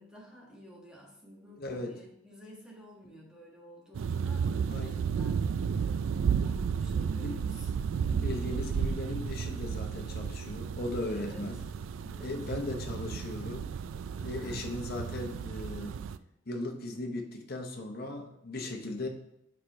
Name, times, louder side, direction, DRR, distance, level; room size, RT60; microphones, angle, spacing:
voice 1, 0.0-5.5 6.4-7.7 11.0-11.6 12.0-12.5 14.1-14.8, equal, 5° right, -4 dB, 1.4 m, -51 dB
voice 2, 1.6-1.9 4.7-5.0 7.2-7.4 8.1-11.6 12.2-13.7 14.2-16.0 16.5-19.1, left 2 dB, 50° left, 2 dB, 0.9 m, -37 dB
sound 1, 3.9-16.2, right 6 dB, 75° right, 0.3 m, -33 dB
4.8 x 4.4 x 4.7 m, 0.79 s
head